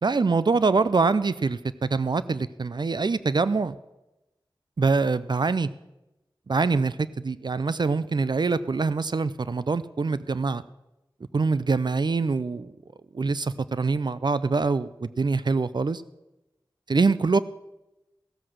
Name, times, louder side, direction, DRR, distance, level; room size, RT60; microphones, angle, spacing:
voice 1, 0.0-3.7 4.8-5.7 6.5-10.6 11.3-12.7 13.1-16.0 16.9-17.4, right 4 dB, 55° right, 15 dB, 0.5 m, -24 dB
15.5 x 7.6 x 6.3 m, 0.96 s
wide cardioid pair, 45°, 9 cm